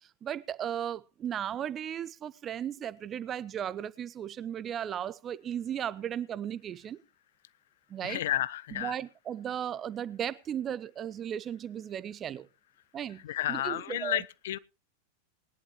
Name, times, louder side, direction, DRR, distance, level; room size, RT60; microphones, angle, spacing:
voice 1, 0.0-7.0 7.9-8.2 8.7-12.5 12.9-14.2, right 9 dB, 25° right, 0.7 m, -36 dB
voice 2, 8.0-8.9 13.2-14.6, left 13 dB, 55° left, 0.6 m, -32 dB
20.5 x 11.0 x 3.0 m
figure-of-eight pair, 90°, 0 cm